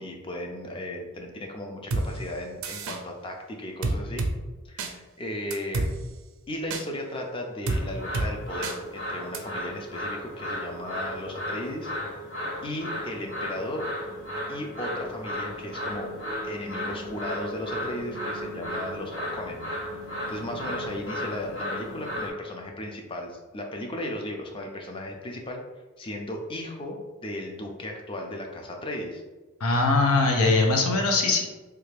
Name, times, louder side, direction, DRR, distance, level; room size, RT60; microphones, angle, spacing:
voice 1, 0.0-4.3 4.6-5.9 6.5-11.9 12.6-13.9 14.5-16.1 16.4-19.7 20.3-25.6 26.0-29.2, left 1 dB, 25° left, 2 dB, 0.4 m, -36 dB
sound 1, 1.9-2.1 2.6-3.0 3.8-4.3 4.8-4.9 5.5-5.9 6.7-6.8 7.7-7.8 8.1-8.3 8.6-8.8 9.3-9.4, right 2 dB, 70° right, 0.4 m, -27 dB
sound 2, 7.7-22.3, left 1 dB, 55° left, 1.3 m, -35 dB
voice 2, 29.6-31.4, left 3 dB, 80° left, 2 dB, 0.6 m, -21 dB
3.3 x 2.4 x 3.3 m, 1.2 s
head